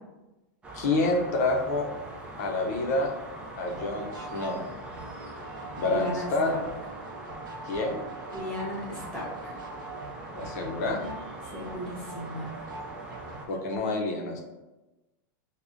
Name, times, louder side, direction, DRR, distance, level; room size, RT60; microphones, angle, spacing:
sound 1, 0.6-13.5, right 2 dB, 10° right, 0.3 m, -42 dB
voice 1, 0.7-1.9 2.4-3.1 3.6-4.7 5.7-6.6 7.6-8.1 10.4-11.0 13.5-14.4, left 2 dB, 55° left, 2 dB, 0.6 m, -28 dB
sound 2, 3.6-13.8, right 3 dB, 90° right, 0.5 m, -44 dB
voice 2, 5.8-6.6 8.3-9.6 11.5-12.5, equal, 10° left, -6 dB, 0.7 m, -36 dB
4.8 x 2.1 x 2.5 m, 1.1 s
supercardioid pair, 165°, 11 cm